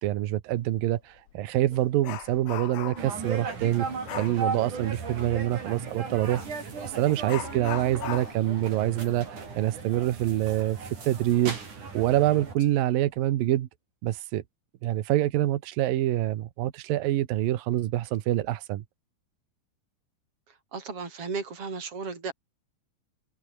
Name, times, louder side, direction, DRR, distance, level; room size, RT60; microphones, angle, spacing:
voice 1, 0.0-3.9 4.2-6.5 7.0-9.3 9.6-11.6 11.9-13.7 14.0-14.4 14.8-18.8, right 14 dB, 70° right, 2.9 m, -26 dB
Dog, 0.7-0.9 1.3-3.2 4.1-4.4 6.4-6.6 7.3-10.6 10.9-11.0 11.5-11.6 12.3-12.7 13.0-13.3, left 12 dB, 85° left, 3.6 m, -39 dB
sound 1, 3.0-12.5, right 4 dB, 50° right, 6.8 m, -36 dB
voice 2, 20.7-22.3, right 4 dB, 35° right, 6.6 m, -34 dB
omnidirectional pair, 4.5 m